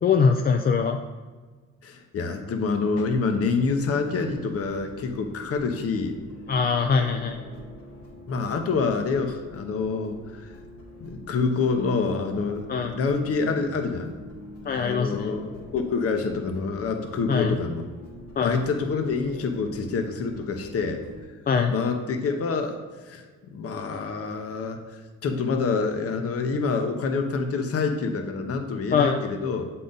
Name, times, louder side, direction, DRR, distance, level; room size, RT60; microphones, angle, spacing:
voice 1, 0.0-1.0 6.5-7.4 12.7-13.0 14.7-15.3 17.3-17.6 18.4-18.6 21.5-21.7 28.9-29.2, left 5 dB, 30° left, 4 dB, 0.4 m, -22 dB
voice 2, 1.8-6.2 8.3-10.5 11.0-14.1 14.8-17.8 18.4-21.0 21.7-22.8 23.1-23.2 23.5-24.8 25.2-29.6, left 4 dB, 50° left, 5 dB, 0.8 m, -27 dB
sound 1, 3.5-21.2, equal, 85° left, 1.9 m, -44 dB
7.4 x 3.9 x 3.9 m, 1.4 s
cardioid pair, 90°, 30 cm